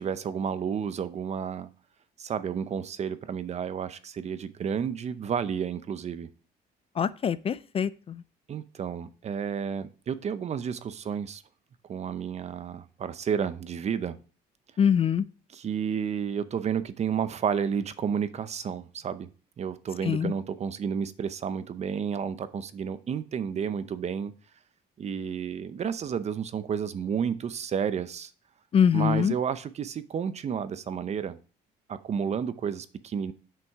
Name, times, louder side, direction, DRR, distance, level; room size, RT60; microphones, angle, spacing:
voice 1, 0.0-1.7 2.2-6.3 8.5-11.4 11.9-14.2 15.5-19.3 19.6-24.3 25.0-28.3 28.9-31.4 31.9-33.3, right 7 dB, 40° right, 13 dB, 0.7 m, -31 dB
voice 2, 7.0-8.2 14.8-15.2 20.0-20.3 28.7-29.3, left 8 dB, 35° left, 16 dB, 0.4 m, -24 dB
7.9 x 6.0 x 4.7 m, 0.37 s
cardioid pair, 110°, 17 cm